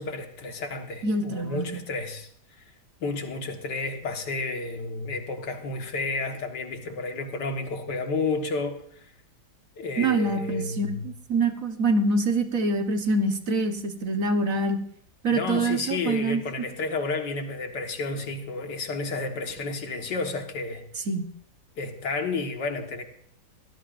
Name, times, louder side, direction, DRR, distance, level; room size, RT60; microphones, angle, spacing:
voice 1, 0.0-2.3 3.0-9.1 9.8-11.1 15.3-20.8 21.8-23.0, left 3 dB, 85° left, 2.3 m, -31 dB
voice 2, 1.0-1.8 10.0-14.8 15.2-16.4 21.1-21.3, right 2 dB, 55° right, 1.6 m, -25 dB
24.0 x 17.0 x 2.6 m
omnidirectional pair, 1.8 m